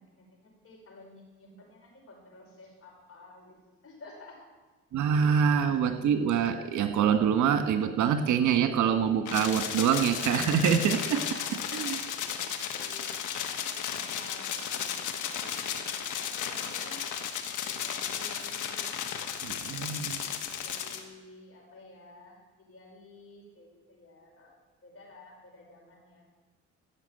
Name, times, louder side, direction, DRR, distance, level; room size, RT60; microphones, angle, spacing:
voice 1, 0.0-3.6 3.8-4.5 11.2-11.9 12.2-17.1 17.6-18.8 19.7-20.2 20.6-22.4 22.7-24.5 24.8-26.3, left 2 dB, 45° left, -1 dB, 5.8 m, -52 dB
voice 2, 4.9-11.2 11.7-12.0 19.4-20.2, right 7 dB, 75° right, 8 dB, 1.4 m, -25 dB
sound 1, 9.3-21.0, left 8 dB, 80° left, 1.5 m, -34 dB
15.0 x 6.9 x 8.9 m, 1.3 s
cardioid pair, 90°, 30 cm